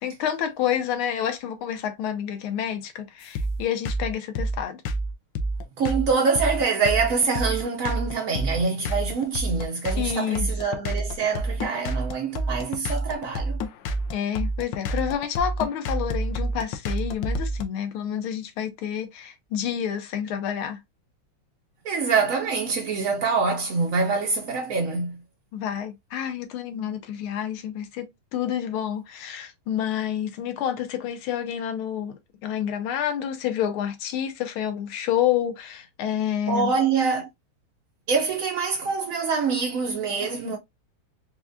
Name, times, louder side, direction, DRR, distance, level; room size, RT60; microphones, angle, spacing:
voice 1, 0.0-4.8 10.0-10.5 14.1-20.8 25.5-36.7 40.2-40.6, left 9 dB, 85° left, 1.6 m, -29 dB
sound 1, 3.3-17.6, right 1 dB, 70° left, 1.2 m, -28 dB
voice 2, 5.8-13.6 21.8-25.2 36.5-37.3 38.1-40.6, right 5 dB, 85° right, 0.7 m, -25 dB
4.6 x 2.3 x 2.5 m
omnidirectional pair, 2.2 m